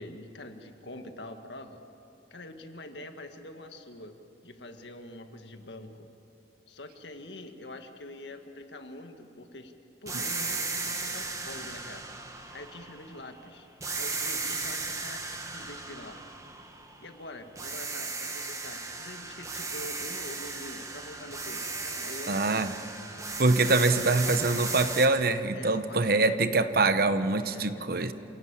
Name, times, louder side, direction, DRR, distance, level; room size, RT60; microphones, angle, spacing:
voice 1, 0.0-1.8 2.3-4.2 4.4-6.1 6.7-9.7 10.0-12.0 12.5-13.7 14.0-15.2 15.5-16.2 17.0-22.7 23.6-24.3 25.5-26.5 27.4-27.9, left 1 dB, 80° left, 6 dB, 1.8 m, -45 dB
sound 1, 10.1-13.3 13.8-17.2 17.6-25.1, right 3 dB, 20° right, 1.6 m, -36 dB
voice 2, 22.3-22.7 23.4-28.1, right 3 dB, 55° right, 11 dB, 1.0 m, -24 dB
27.5 x 17.0 x 8.8 m, 2.9 s
head